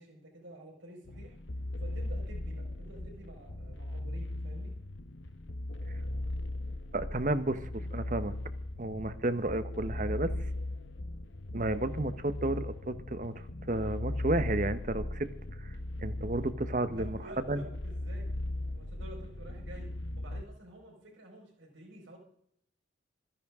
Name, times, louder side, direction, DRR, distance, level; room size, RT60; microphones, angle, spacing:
voice 1, 0.0-1.4 1.8-4.7 16.9-18.3 18.6-22.2, right 1 dB, 90° right, 0 dB, 4.8 m, -50 dB
The Plan, 1.1-20.4, left 1 dB, 80° left, 1.1 m, -38 dB
voice 2, 6.9-8.3 8.8-10.3 11.5-13.3 13.7-15.3 15.6-15.7 16.0-17.2 17.5-17.6, right 2 dB, 40° right, 12 dB, 0.9 m, -32 dB
27.0 x 10.5 x 3.6 m, 0.73 s
head